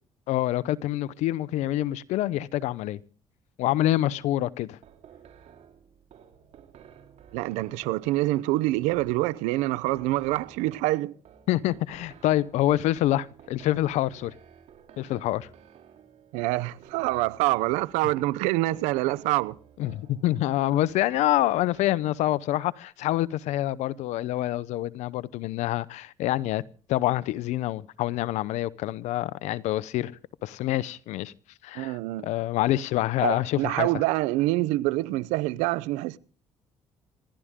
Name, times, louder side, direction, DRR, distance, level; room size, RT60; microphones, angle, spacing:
voice 1, 0.3-3.0 3.6-4.8 11.5-14.3 15.0-15.5 19.8-26.6 26.9-30.1 30.4-31.3 31.6-32.0 32.2-33.9, left 14 dB, 75° left, 0.8 m, -26 dB
sound 1, 4.8-21.9, right 8 dB, 65° right, 3.0 m, -53 dB
voice 2, 7.3-11.1 16.3-19.6 31.7-32.3 33.2-36.2, right 18 dB, 90° right, 0.7 m, -26 dB
26.5 x 12.5 x 3.7 m
supercardioid pair, 80°, 12 cm